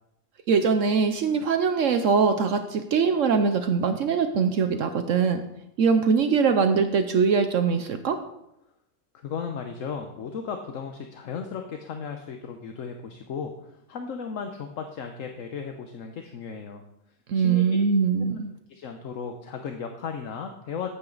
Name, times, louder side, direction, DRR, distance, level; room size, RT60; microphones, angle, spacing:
voice 1, 0.5-5.4 5.8-8.2 17.3-18.5, right 5 dB, 65° right, 8 dB, 1.0 m, -22 dB
voice 2, 9.1-16.8 17.3-17.6 18.7-20.9, left 6 dB, 70° left, 5 dB, 1.2 m, -35 dB
14.0 x 8.9 x 3.9 m, 0.83 s
omnidirectional pair, 1.4 m